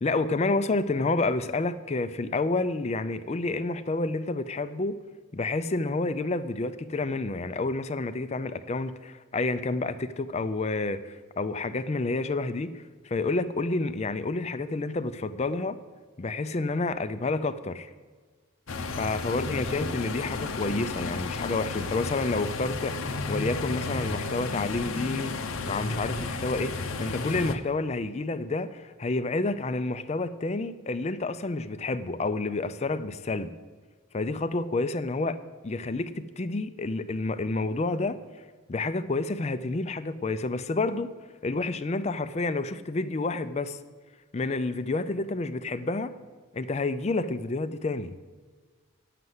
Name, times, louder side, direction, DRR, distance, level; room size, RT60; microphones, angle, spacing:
voice 1, 0.0-5.0 5.3-15.8 16.2-17.9 19.0-33.5 34.1-35.3 35.6-38.2 38.7-41.1 41.4-43.8 44.3-46.1 46.5-48.1, left 3 dB, 30° left, 13 dB, 0.4 m, -29 dB
sound 1, 18.7-27.6, left 3 dB, 90° left, 0.7 m, -33 dB
9.4 x 6.7 x 7.9 m, 1.4 s
head